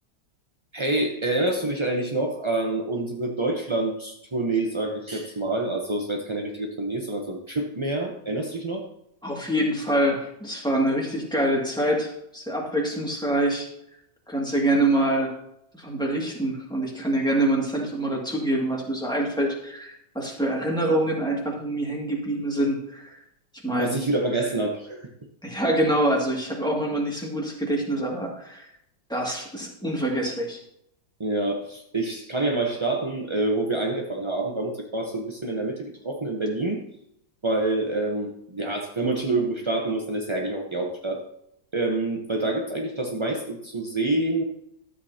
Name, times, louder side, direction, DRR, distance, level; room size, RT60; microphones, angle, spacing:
voice 1, 0.7-8.9 23.8-25.0 31.2-36.8 37.4-41.2 41.7-44.4, right 2 dB, 45° right, 1 dB, 0.3 m, -27 dB
voice 2, 9.2-13.7 14.3-15.3 15.7-23.2 23.6-23.9 25.4-28.7 29.1-30.6, right 1 dB, ahead, -2 dB, 1.9 m, -25 dB
12.5 x 8.2 x 2.8 m, 0.76 s
omnidirectional pair, 2.1 m